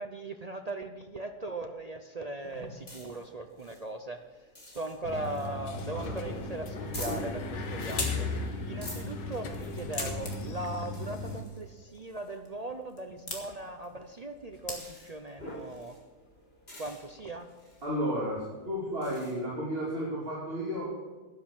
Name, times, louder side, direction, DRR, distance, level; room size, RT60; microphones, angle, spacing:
voice 1, 0.0-4.2 4.7-16.0 16.8-17.5, right 2 dB, 60° right, 6 dB, 0.4 m, -39 dB
sound 1, 2.4-19.3, left 1 dB, 35° left, 4.1 m, -48 dB
sound 2, 5.0-11.4, left 3 dB, 85° left, 2.0 m, -36 dB
Branch Cracking, 7.3-15.3, left 3 dB, 60° left, 2.9 m, -43 dB
voice 2, 17.8-20.9, equal, 35° right, -6 dB, 3.3 m, -33 dB
12.5 x 9.9 x 7.3 m, 1.4 s
omnidirectional pair, 1.8 m